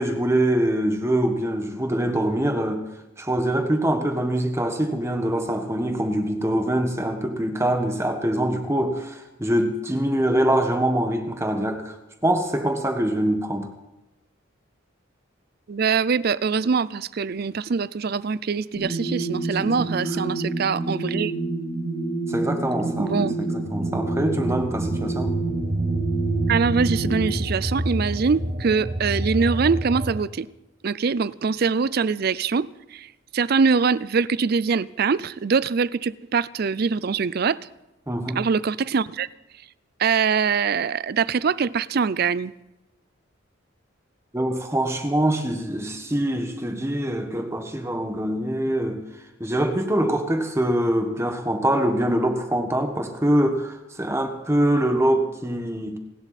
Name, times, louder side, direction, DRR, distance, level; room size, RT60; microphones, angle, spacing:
voice 1, 0.0-2.8 3.2-11.9 12.2-13.7 19.6-19.9 22.3-25.3 38.1-38.4 44.3-49.0 49.4-56.0, right 1 dB, 15° right, 1.5 m, -24 dB
voice 2, 15.7-21.3 23.0-23.4 26.5-30.5 30.8-33.1 33.3-37.6 38.3-39.3 40.0-42.5, right 5 dB, 50° right, 0.4 m, -23 dB
sound 1, 18.7-27.3, right 2 dB, 80° left, 7.5 m, -28 dB
sound 2, 23.7-30.2, right 2 dB, 30° right, 1.1 m, -28 dB
28.5 x 10.5 x 4.2 m
head